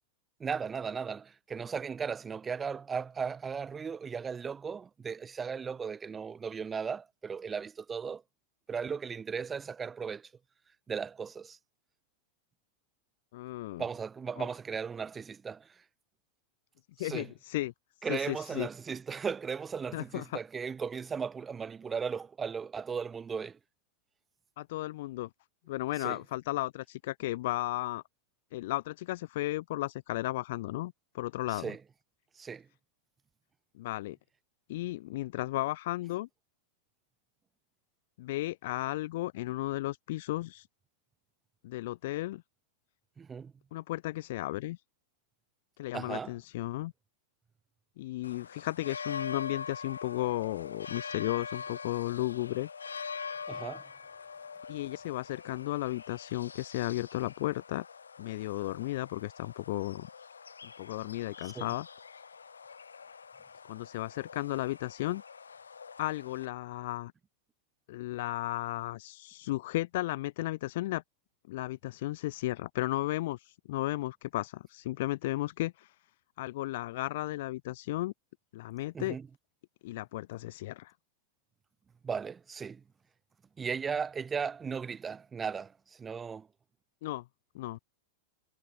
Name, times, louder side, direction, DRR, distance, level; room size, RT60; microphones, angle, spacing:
voice 1, 0.4-8.2 8.7-10.3 10.9-11.6 13.8-15.7 17.0-17.3 18.0-23.6 26.0-26.2 31.5-31.8 32.4-32.6 43.2-43.5 45.9-46.3 53.5-53.8 61.4-61.7 78.9-79.3 82.0-82.8 83.6-85.7 86.0-86.5, right 6 dB, 20° right, 1.5 m, -36 dB
voice 2, 13.3-13.8 14.4-14.5 16.9-17.7 18.1-18.7 19.9-20.4 24.6-25.3 25.7-28.0 28.5-31.7 33.8-34.2 34.7-36.3 38.2-40.7 41.6-42.4 43.7-44.8 45.8-46.9 48.0-52.7 54.7-57.8 58.2-60.1 60.8-61.9 62.1-62.2 63.7-65.2 66.0-67.1 67.9-71.0 71.5-75.9 76.4-78.1 78.5-79.2 79.8-80.9 87.0-87.2 87.5-87.8, left 17 dB, 55° left, 1.4 m, -34 dB
sound 1, 48.2-66.5, left 5 dB, 75° left, 2.6 m, -44 dB
figure-of-eight pair, 90°, 0 cm